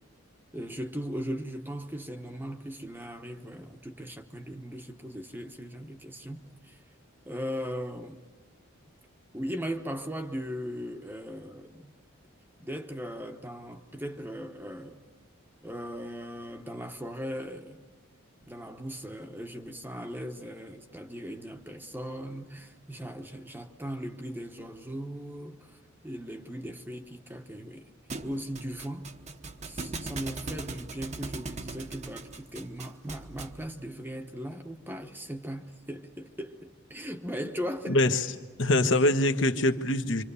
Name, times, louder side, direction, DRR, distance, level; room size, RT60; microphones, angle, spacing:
voice 1, 0.5-6.8 7.3-8.2 9.3-11.9 12.6-15.0 15.6-17.9 18.5-25.8 26.0-27.9 28.2-29.1 29.6-38.0, equal, 10° right, 1.0 m, -38 dB
Thump thud, 28.1-33.7, right 3 dB, 35° right, 1.0 m, -40 dB
voice 2, 37.9-38.3 38.6-40.2, left 1 dB, 60° left, 1.3 m, -24 dB
27.5 x 25.5 x 6.9 m
head